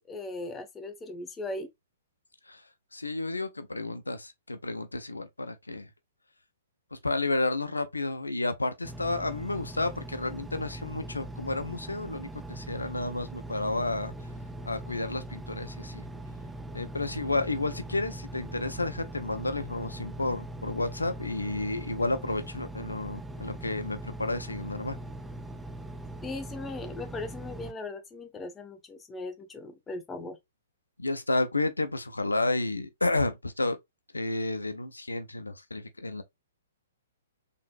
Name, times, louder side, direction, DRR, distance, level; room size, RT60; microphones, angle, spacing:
voice 1, 0.1-1.7 26.2-30.4, left 2 dB, 15° left, 1.1 m, -38 dB
voice 2, 2.9-5.9 6.9-14.1 14.6-16.0 16.7-25.0 31.0-33.8 34.1-36.2, left 2 dB, 90° left, 0.8 m, -31 dB
Engine, 8.8-27.7, right 1 dB, 5° right, 0.5 m, -41 dB
3.9 x 3.8 x 2.4 m
figure-of-eight pair, 120°, 0 cm